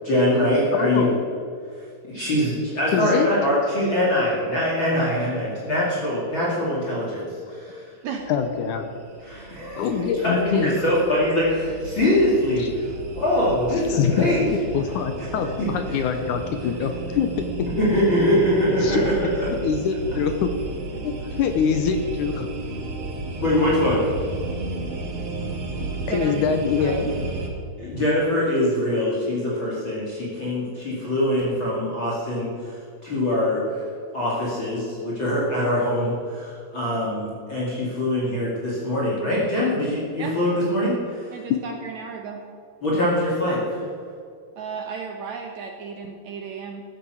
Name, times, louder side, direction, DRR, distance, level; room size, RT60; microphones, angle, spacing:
voice 1, 0.0-1.1 2.1-7.8 9.2-14.4 15.6-15.7 17.8-19.1 23.4-24.1 27.8-33.8 34.1-41.3 42.8-43.8, left 1 dB, 35° left, -6 dB, 2.7 m, -23 dB
voice 2, 0.7-1.2 2.9-3.3 8.3-8.9 9.8-10.8 12.6-12.7 13.9-17.7 18.8-19.1 19.6-20.5 21.0-22.5 25.8-27.1 31.8-31.9 41.5-41.6, left 7 dB, 75° left, 6 dB, 2.0 m, -24 dB
sound 1, 8.2-27.5, right 2 dB, 45° right, 2.1 m, -33 dB
voice 3, 26.1-26.5 26.8-27.0 40.2-40.4 41.3-42.4 44.6-46.8, right 6 dB, 70° right, 3 dB, 1.8 m, -34 dB
14.5 x 8.7 x 6.3 m, 2.4 s
omnidirectional pair, 4.2 m